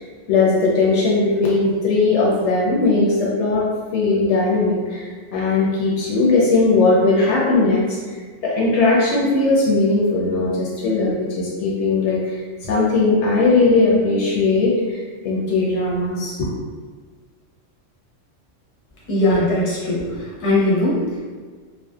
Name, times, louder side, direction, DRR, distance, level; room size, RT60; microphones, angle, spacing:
voice 1, 0.3-3.7 3.9-16.5, left 3 dB, 70° left, -5 dB, 0.8 m, -19 dB
voice 2, 19.1-21.2, left 1 dB, 30° left, -8 dB, 0.7 m, -20 dB
2.6 x 2.1 x 2.3 m, 1.5 s
omnidirectional pair, 1.3 m